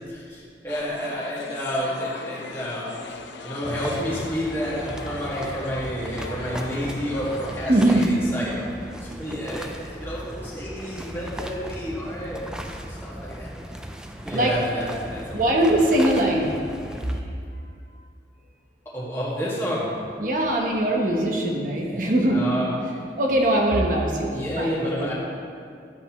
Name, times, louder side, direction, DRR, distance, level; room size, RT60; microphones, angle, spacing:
voice 1, 0.1-2.9 3.4-13.5 14.2-15.9 16.4-16.5 18.9-19.9 21.8-22.7 24.3-25.1, equal, 15° left, -7 dB, 1.7 m, -30 dB
sound 1, 0.7-8.0, left 4 dB, 85° left, 0.6 m, -39 dB
sound 2, 3.6-17.2, equal, 5° right, 0.3 m, -36 dB
voice 2, 7.7-8.1 14.3-14.5 15.3-16.6 20.2-22.4 23.2-25.1, right 1 dB, 45° right, 0 dB, 1.0 m, -21 dB
11.0 x 7.9 x 3.0 m, 2.3 s
head